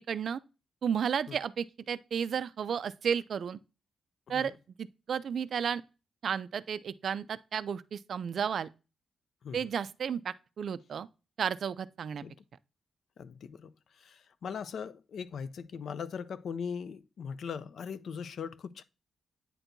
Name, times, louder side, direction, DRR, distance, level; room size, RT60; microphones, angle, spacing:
voice 1, 0.1-0.4 0.8-3.6 4.3-4.5 4.8-5.8 6.2-8.7 9.5-11.1 11.4-12.2, right 7 dB, 55° right, 0.3 m, -33 dB
voice 2, 13.2-13.7 14.0-18.8, left 6 dB, 60° left, 0.4 m, -40 dB
9.0 x 4.4 x 2.6 m
wide cardioid pair, 155°, 0 cm